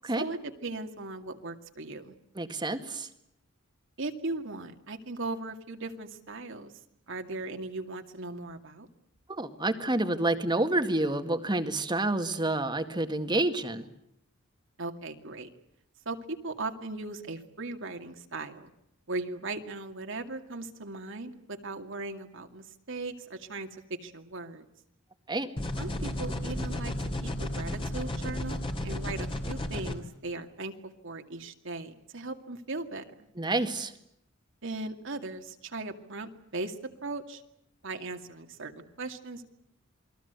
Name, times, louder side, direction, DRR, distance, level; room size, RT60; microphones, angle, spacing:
voice 1, 0.2-2.1 4.0-6.7 7.1-8.9 14.8-15.5 16.1-18.7 19.1-24.6 25.8-26.9 27.2-30.7 31.0-33.3 34.6-36.8 37.0-37.4 37.8-39.5, right 2 dB, 65° right, 5 dB, 2.3 m, -38 dB
voice 2, 2.4-3.1 9.3-13.8 25.3-25.5 33.4-33.9, right 2 dB, 20° right, 8 dB, 1.9 m, -28 dB
sound 1, 25.6-29.9, left 1 dB, 25° left, 2.7 m, -33 dB
28.5 x 21.5 x 8.2 m, 0.77 s
head